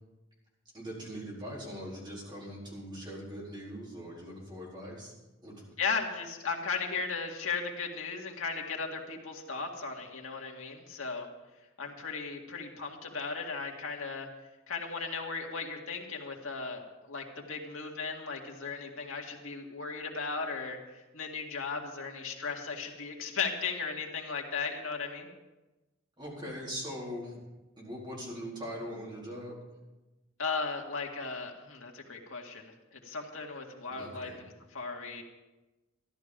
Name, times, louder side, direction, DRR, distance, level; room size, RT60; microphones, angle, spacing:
voice 1, 0.7-5.1 5.4-5.6 26.2-27.4 27.8-29.6 34.0-34.4, equal, 20° right, -5 dB, 4.4 m, -41 dB
voice 2, 5.8-11.3 11.8-14.3 14.7-20.8 21.1-25.3 30.4-32.7 33.0-34.3 34.7-35.2, left 4 dB, 80° left, 0 dB, 2.1 m, -36 dB
14.0 x 11.5 x 5.2 m, 1.1 s
head